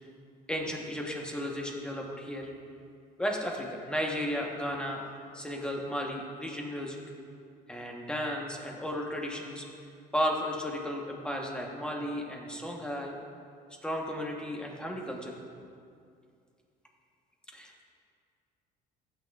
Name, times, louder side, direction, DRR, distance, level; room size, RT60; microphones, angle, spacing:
voice 1, 0.5-2.5 3.2-5.0 5.3-7.0 7.7-9.7 10.1-13.1 13.8-15.4 17.5-17.8, equal, 5° left, 0 dB, 1.1 m, -34 dB
15.5 x 8.7 x 2.4 m, 2.3 s
cardioid pair, 150°, 16 cm